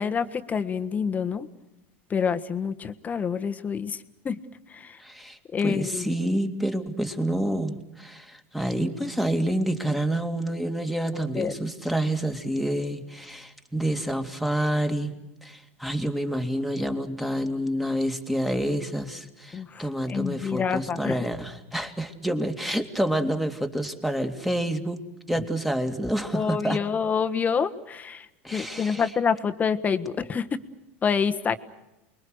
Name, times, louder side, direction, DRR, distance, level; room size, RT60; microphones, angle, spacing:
voice 1, 0.0-1.5 2.1-4.4 4.7-5.0 5.5-6.1 11.3-11.5 19.5-21.3 26.3-28.3 28.5-30.5 31.0-31.6, left 6 dB, 25° left, 8 dB, 1.5 m, -27 dB
voice 2, 5.0-25.0 25.3-26.8 28.4-29.1, right 1 dB, ahead, 6 dB, 2.4 m, -28 dB
29.5 x 22.0 x 6.5 m, 0.96 s
supercardioid pair, 115°, 7 cm